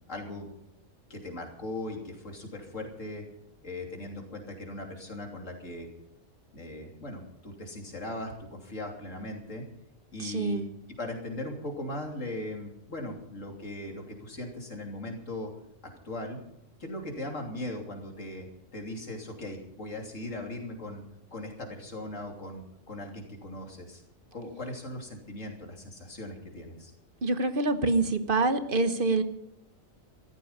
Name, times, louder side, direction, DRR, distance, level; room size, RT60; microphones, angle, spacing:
voice 1, 0.1-0.5 1.1-3.2 3.6-5.9 6.5-9.6 10.1-10.7 11.0-15.5 16.1-16.4 16.8-21.0 21.3-24.0 24.3-26.9, left 1 dB, 70° left, 2 dB, 3.4 m, -39 dB
voice 2, 10.2-10.7 27.2-29.2, right 3 dB, 45° right, 9 dB, 1.3 m, -26 dB
15.0 x 14.0 x 5.6 m, 0.79 s
omnidirectional pair, 1.4 m